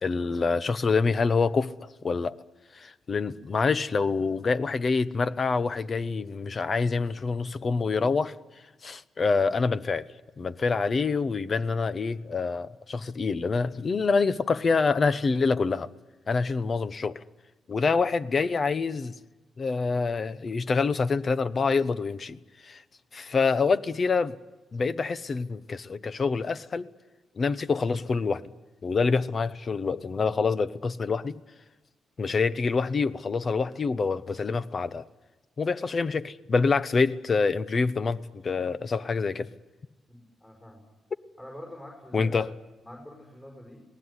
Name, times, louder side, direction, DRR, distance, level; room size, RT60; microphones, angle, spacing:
voice 1, 0.0-2.4 2.7-8.4 8.8-10.1 10.4-15.9 16.3-17.2 17.7-19.1 19.6-22.8 23.1-24.4 24.7-26.9 27.4-28.4 28.8-31.4 32.2-35.1 35.6-39.5 42.1-42.5, left 4 dB, 40° left, 1.0 m, -26 dB
voice 2, 40.1-40.8 41.4-42.6 42.8-43.8, left 1 dB, 15° left, 5.6 m, -45 dB
28.5 x 19.0 x 9.8 m
cardioid pair, 120°, 0 cm